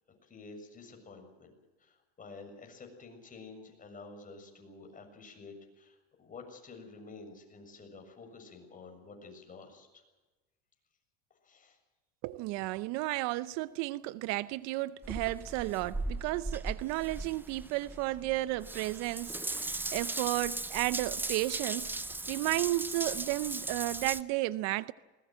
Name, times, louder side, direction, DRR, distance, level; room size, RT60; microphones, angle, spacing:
voice 1, 0.3-1.5 1.8-10.0 11.4-11.8, left 3 dB, 25° left, 7.1 m, -50 dB
voice 2, 12.2-22.0 22.3-24.9, right 18 dB, 60° right, 0.7 m, -33 dB
Water tap faucet / Bathtub (filling or washing) / Drip, 15.0-24.2, right 2 dB, 5° right, 0.7 m, -38 dB
21.0 x 19.5 x 7.8 m
supercardioid pair, 105°, 31 cm